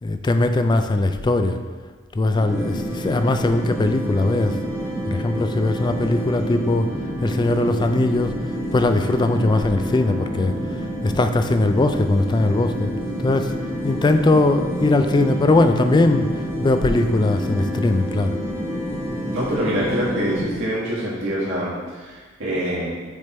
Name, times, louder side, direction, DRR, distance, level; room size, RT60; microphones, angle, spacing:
voice 1, 0.0-1.6 2.1-4.6 5.1-6.9 7.2-8.3 8.7-10.5 11.0-12.9 13.2-13.5 13.8-16.3 16.6-18.4, left 2 dB, 20° left, 8 dB, 0.3 m, -20 dB
sound 1, 2.3-20.6, equal, 55° left, 1.1 m, -31 dB
sound 2, 2.5-20.4, equal, 15° right, 0.7 m, -32 dB
voice 2, 19.3-22.9, equal, 75° right, -8 dB, 1.7 m, -25 dB
6.6 x 3.5 x 4.2 m, 1.4 s
head